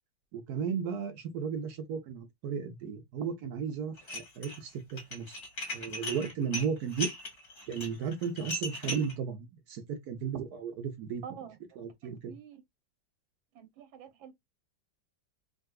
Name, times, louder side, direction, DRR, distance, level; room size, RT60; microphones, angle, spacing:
voice 1, 0.3-5.4 5.7-7.1 7.7-11.2 11.8-12.4, right 6 dB, 70° right, 0.9 m, -35 dB
Dishes pots and pans, 4.0-4.6 4.9-9.1, left 1 dB, 40° left, 1.8 m, -38 dB
voice 2, 11.2-11.6 12.0-12.6 13.5-14.3, right 8 dB, 90° right, 1.7 m, -47 dB
3.7 x 2.7 x 2.2 m
omnidirectional pair, 2.1 m